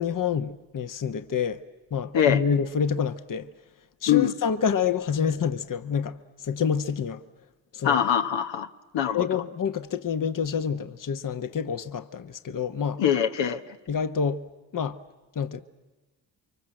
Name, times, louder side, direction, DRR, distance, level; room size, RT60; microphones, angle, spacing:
voice 1, 0.0-1.6 1.9-3.5 4.0-7.2 7.7-8.0 9.1-13.0 13.9-14.4 14.7-15.0 15.3-15.6, left 7 dB, 45° left, 1.2 m, -27 dB
voice 2, 7.8-8.7 8.9-9.4 13.0-13.6, left 9 dB, 70° left, 1.3 m, -23 dB
30.0 x 24.0 x 7.8 m
supercardioid pair, 55°, 46 cm